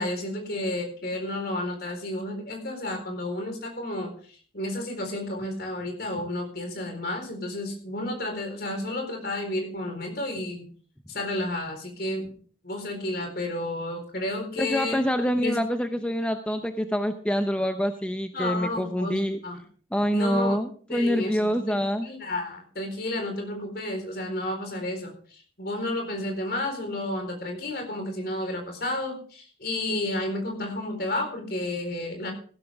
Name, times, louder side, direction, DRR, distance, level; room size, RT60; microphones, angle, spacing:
voice 1, 0.0-4.1 4.5-10.7 11.1-12.3 12.6-15.0 15.4-15.6 18.3-19.6 20.1-20.6 20.9-32.3, left 1 dB, 55° left, 4 dB, 4.2 m, -31 dB
voice 2, 14.6-19.4 19.9-22.1, equal, 5° left, 6 dB, 0.7 m, -26 dB
15.5 x 13.0 x 3.5 m, 0.42 s
head